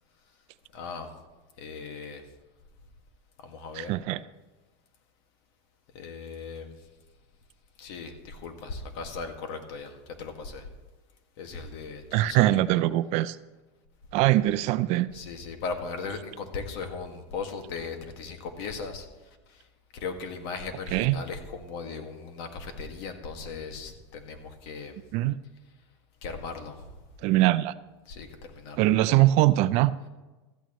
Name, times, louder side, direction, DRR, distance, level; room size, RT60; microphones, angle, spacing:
voice 1, 0.7-1.1 1.6-2.2 3.4-3.9 5.9-6.7 7.8-10.7 11.4-12.5 15.1-19.1 19.5-19.6 19.9-25.0 26.2-27.0 28.1-28.8 29.2-29.3, left 4 dB, 65° left, 5 dB, 1.9 m, -38 dB
voice 2, 3.8-4.2 12.1-13.4 14.1-15.1 20.9-21.2 25.1-25.4 27.2-27.7 28.8-29.9, right 16 dB, 50° right, 15 dB, 0.5 m, -22 dB
15.5 x 14.0 x 3.1 m, 1.2 s
supercardioid pair, 140°, 15 cm